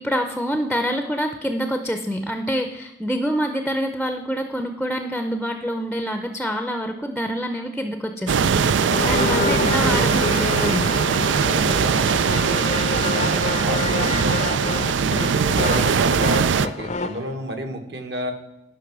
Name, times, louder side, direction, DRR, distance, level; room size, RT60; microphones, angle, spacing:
voice 1, 0.0-8.5 9.0-11.0, equal, ahead, 6 dB, 0.6 m, -26 dB
sound 1, 8.3-16.7, right 6 dB, 90° right, 0.4 m, -21 dB
sound 2, 8.4-17.2, left 3 dB, 40° left, 0.6 m, -27 dB
voice 2, 11.5-14.6 15.0-18.3, right 1 dB, 65° right, 5 dB, 1.5 m, -31 dB
11.5 x 5.7 x 6.1 m, 0.88 s
head